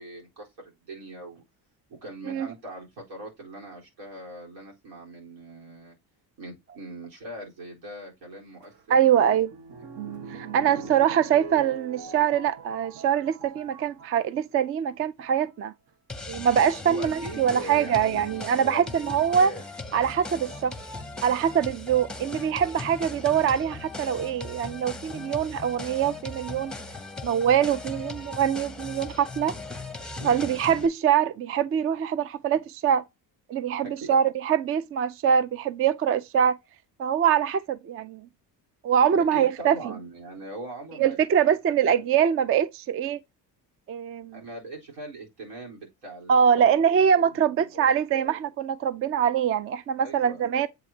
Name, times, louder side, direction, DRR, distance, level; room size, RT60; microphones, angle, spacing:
voice 1, 0.0-1.4 2.0-6.0 6.4-9.4 10.5-10.9 16.8-18.2 18.5-19.6 30.2-30.4 33.8-34.1 39.1-41.2 41.7-42.5 44.3-48.5 50.0-50.4, right 2 dB, 85° right, 4.1 m, -41 dB
sound 1, 8.6-14.3 15.0-15.4 16.7-16.8 17.5-17.8 19.9-20.6 21.2-21.3 21.5-21.6, right 5 dB, 60° right, 1.4 m, -42 dB
voice 2, 8.9-9.5 10.3-15.7 16.3-19.5 19.9-20.7 21.2-26.7 27.2-29.5 30.2-33.0 33.5-36.6 37.0-38.2 38.8-39.8 41.0-43.2 43.9-44.4 46.3-50.7, right 8 dB, 35° right, 0.4 m, -23 dB
sound 2, 16.1-30.9, left 3 dB, ahead, 0.8 m, -38 dB
7.9 x 4.8 x 2.8 m
cardioid pair, 125°, 42 cm